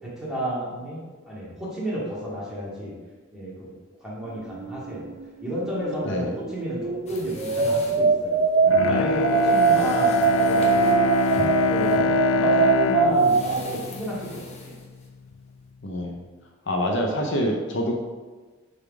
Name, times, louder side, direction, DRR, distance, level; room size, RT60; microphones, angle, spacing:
voice 1, 0.0-2.9 3.3-3.7 4.0-5.1 5.4-8.4 8.8-11.0 11.7-14.8, equal, 5° right, -8 dB, 2.2 m, -32 dB
sound 1, 4.5-5.5 5.8-13.6, right 5 dB, 35° right, 0.3 m, -22 dB
sound 2, 7.1-15.7, left 2 dB, 30° left, 0.9 m, -42 dB
Bowed string instrument, 8.6-14.9 15.3-15.4, left 5 dB, 90° left, 0.3 m, -26 dB
voice 2, 15.8-16.2 16.7-17.9, equal, 60° left, 2 dB, 0.7 m, -26 dB
6.5 x 4.1 x 4.8 m, 1.3 s
head